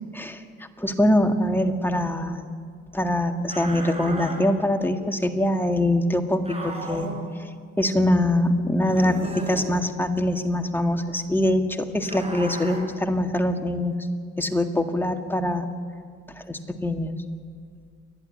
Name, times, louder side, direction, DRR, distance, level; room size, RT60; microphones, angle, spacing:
voice 1, 0.8-2.5 2.9-7.1 7.8-14.0 14.4-15.7 16.4-17.1, left 1 dB, 5° left, 5 dB, 1.9 m, -23 dB
sound 1, 3.5-4.4 6.4-7.2 8.8-9.7 12.0-12.8, right 2 dB, 20° right, 6.6 m, -35 dB
29.5 x 11.5 x 10.0 m, 2.1 s
cardioid pair, 90°, 30 cm